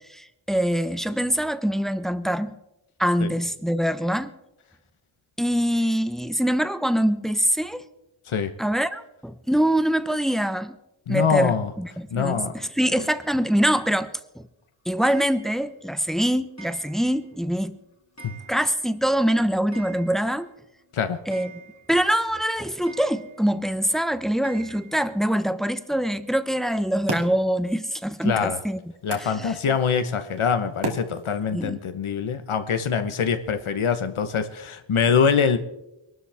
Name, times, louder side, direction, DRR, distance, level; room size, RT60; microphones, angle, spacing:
voice 1, 0.0-2.6 3.0-4.3 5.4-7.8 8.6-10.8 11.1-14.5 14.9-17.8 18.5-20.5 21.3-21.5 21.9-28.8 29.2-29.6 31.5-31.8, equal, ahead, 12 dB, 0.8 m, -24 dB
voice 2, 11.1-11.7 12.1-12.6 12.9-13.1 18.2-18.3 20.9-21.2 28.2-28.6 29.0-35.6, left 6 dB, 85° left, 9 dB, 1.1 m, -24 dB
Clock, 15.0-15.7 16.6-17.3 17.6-17.7 18.2-18.9 19.2-19.3 19.5-20.5 20.8-20.9 21.3-22.1 22.9-23.6 24.4-25.0, right 4 dB, 35° left, 2.1 m, -46 dB
sound 1, 26.7-31.7, right 2 dB, 55° right, 2.6 m, -37 dB
23.0 x 12.5 x 3.5 m, 0.91 s
wide cardioid pair, 60°, 48 cm